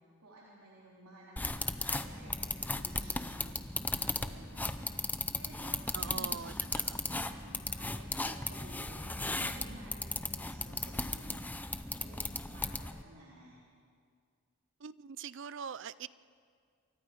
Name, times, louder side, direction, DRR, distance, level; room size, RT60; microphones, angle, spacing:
voice 1, 0.2-3.5 3.8-5.0 5.3-6.8 7.1-11.5 12.0-13.6, right 1 dB, 90° right, -6 dB, 3.8 m, -54 dB
sound 1, 1.4-13.0, left 2 dB, 5° left, 0.6 m, -36 dB
voice 2, 5.9-6.5 6.8-7.0 14.8-16.1, right 7 dB, 55° right, 18 dB, 0.5 m, -43 dB
28.0 x 24.0 x 5.2 m, 2.1 s
head